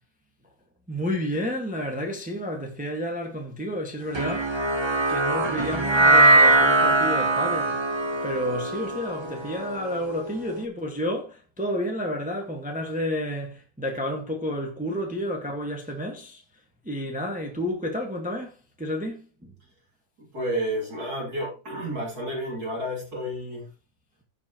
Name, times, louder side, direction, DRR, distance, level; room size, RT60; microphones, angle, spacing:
voice 1, 0.9-4.5 5.1-7.8 8.2-16.4 16.8-19.5, equal, 5° right, 1.5 m, -31 dB
sound 1, 4.1-10.5, right 2 dB, 30° right, 0.5 m, -21 dB
voice 2, 20.2-23.7, equal, 50° right, 3.4 m, -31 dB
15.5 x 5.6 x 3.0 m
omnidirectional pair, 2.1 m